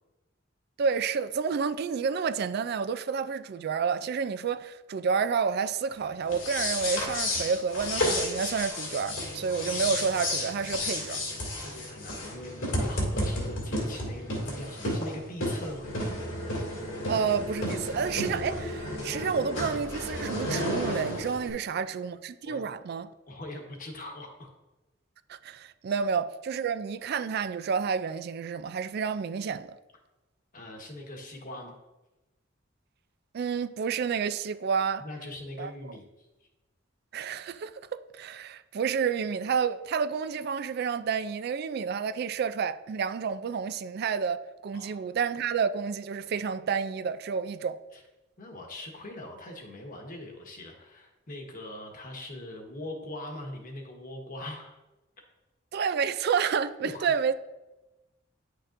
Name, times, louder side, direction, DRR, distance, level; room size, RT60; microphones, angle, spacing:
voice 1, 0.8-11.2 17.1-23.1 25.3-29.7 33.3-35.0 35.6-35.7 37.1-47.8 55.7-57.3, right 6 dB, 55° right, 0.3 m, -30 dB
sound 1, 6.2-21.5, left 1 dB, 85° left, 2.3 m, -32 dB
voice 2, 11.6-15.9 21.4-21.6 22.5-22.6 23.3-24.5 30.5-31.7 35.0-36.3 44.7-45.0 47.9-48.0 48.4-54.8 55.2-55.3 56.8-57.1, left 1 dB, 45° left, 1.2 m, -41 dB
10.0 x 6.5 x 2.5 m
head